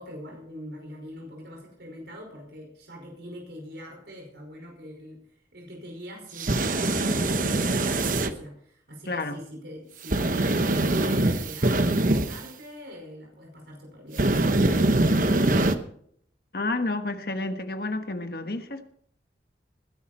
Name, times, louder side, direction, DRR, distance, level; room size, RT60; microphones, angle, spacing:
voice 1, 0.0-15.1, equal, 75° right, 1 dB, 5.2 m, -43 dB
sound 1, 6.4-8.3 10.1-12.4 14.2-15.8, right 2 dB, 50° right, 1.0 m, -23 dB
voice 2, 9.1-9.4 16.5-18.9, left 2 dB, 55° left, 7 dB, 1.4 m, -30 dB
20.0 x 10.5 x 4.3 m, 0.65 s
head